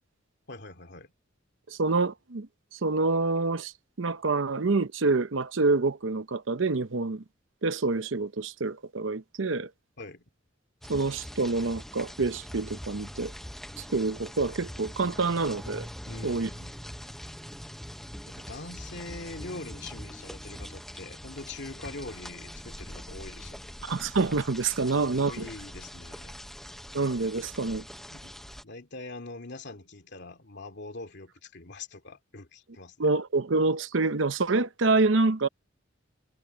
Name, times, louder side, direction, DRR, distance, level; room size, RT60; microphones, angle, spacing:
voice 1, 0.5-1.1 10.0-10.2 16.0-16.8 18.3-23.8 24.9-26.4 28.1-28.3 28.6-33.1, left 2 dB, 60° left, 2.6 m, -43 dB
voice 2, 1.7-2.5 2.7-3.7 4.0-7.2 7.6-9.7 10.9-13.3 13.8-15.9 16.2-16.5 23.8-25.5 26.9-27.8 33.0-35.5, right 3 dB, 70° right, 0.8 m, -27 dB
sound 1, 10.8-28.6, equal, ahead, 0.7 m, -43 dB
head